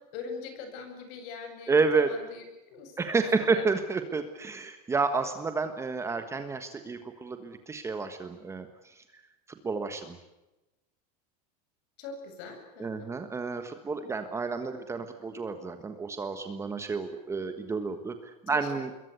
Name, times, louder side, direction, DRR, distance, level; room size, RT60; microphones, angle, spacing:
voice 1, 0.1-3.1 3.5-3.6 12.0-13.1 18.5-18.7, left 5 dB, 60° left, 6 dB, 8.0 m, -42 dB
voice 2, 1.7-2.1 3.0-9.0 9.5-10.2 12.8-18.9, right 4 dB, 15° right, 8 dB, 1.4 m, -30 dB
26.5 x 22.0 x 8.2 m, 1.0 s
cardioid pair, 165°, 20 cm